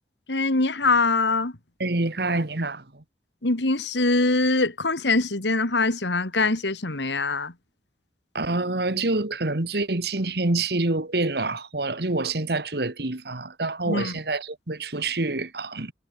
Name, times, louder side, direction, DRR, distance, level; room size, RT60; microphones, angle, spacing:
voice 1, 0.3-1.5 3.4-7.5 13.9-14.1, left 3 dB, 85° left, 2.5 m, -23 dB
voice 2, 1.8-3.0 8.3-15.9, right 2 dB, 65° right, 1.7 m, -27 dB
head